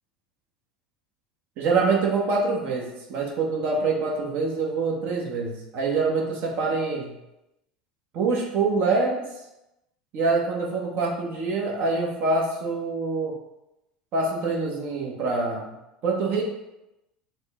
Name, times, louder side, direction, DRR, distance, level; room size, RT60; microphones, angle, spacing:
voice 1, 1.6-7.2 8.1-9.3 10.1-13.3 14.1-15.7 16.0-16.4, right 3 dB, 55° right, -1 dB, 1.0 m, -25 dB
4.1 x 2.2 x 3.5 m, 0.93 s
hypercardioid pair, 80°, 4 cm